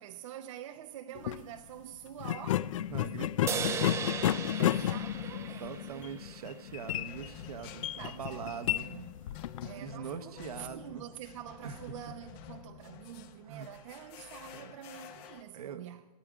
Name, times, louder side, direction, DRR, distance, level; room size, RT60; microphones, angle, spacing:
voice 1, 0.0-2.7 4.5-6.1 7.9-9.2 9.6-16.1, right 11 dB, 50° right, 0.6 m, -47 dB
sound 1, 1.1-1.4 2.2-9.7, left 12 dB, 50° left, 0.4 m, -32 dB
voice 2, 2.9-3.9 5.6-8.9 9.6-11.0 11.6-11.8 13.5-13.7 14.5-14.7 15.1-15.2 15.5-15.9, right 7 dB, 65° right, 1.0 m, -43 dB
sound 2, 3.5-6.9, right 7 dB, 15° right, 0.6 m, -38 dB
sound 3, 4.8-15.4, left 10 dB, 35° left, 0.9 m, -50 dB
15.0 x 13.0 x 4.9 m
hypercardioid pair, 125°, 21 cm